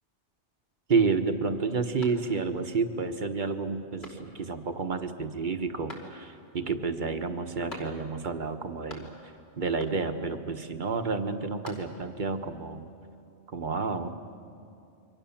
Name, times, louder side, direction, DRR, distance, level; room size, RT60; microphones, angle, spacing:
voice 1, 0.9-9.1 9.6-12.9 13.5-14.1, right 4 dB, 45° right, 7 dB, 1.4 m, -30 dB
sound 1, 2.0-2.7 3.1-3.2 4.0-4.6 5.9-6.5 7.7-8.3 8.6-9.4 9.8-10.3 11.3-12.2, left 1 dB, 60° left, 3.8 m, -47 dB
28.5 x 24.0 x 7.3 m, 2.6 s
omnidirectional pair, 1.2 m